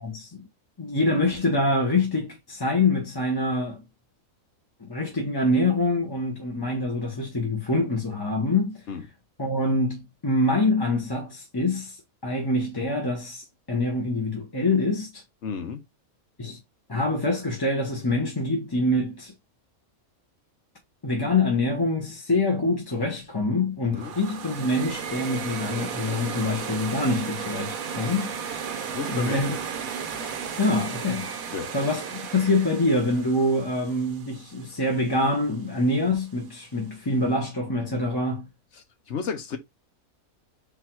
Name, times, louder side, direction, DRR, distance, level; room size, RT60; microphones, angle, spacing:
voice 1, 0.0-0.5 0.8-3.8 4.8-8.8 9.4-15.2 16.4-16.6 16.9-19.3 21.0-28.3 29.1-29.6 30.6-31.3 31.7-38.5, left 2 dB, 20° left, 0.8 m, -25 dB
voice 2, 15.4-15.8 23.9-24.1 28.9-29.4 31.5-31.7 39.1-39.6, left 6 dB, 55° left, 1.2 m, -32 dB
sound 1, 23.9-34.9, right 7 dB, 80° right, 1.2 m, -34 dB
4.0 x 2.6 x 4.4 m
omnidirectional pair, 1.5 m